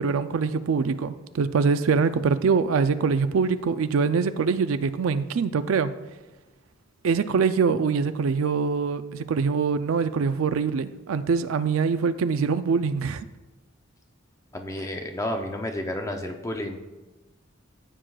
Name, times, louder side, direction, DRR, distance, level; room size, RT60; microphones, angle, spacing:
voice 1, 0.0-5.9 7.0-13.2, right 5 dB, 80° right, 11 dB, 0.4 m, -24 dB
voice 2, 14.5-16.8, left 1 dB, 15° left, 4 dB, 0.6 m, -31 dB
14.5 x 7.5 x 2.3 m, 1.2 s
head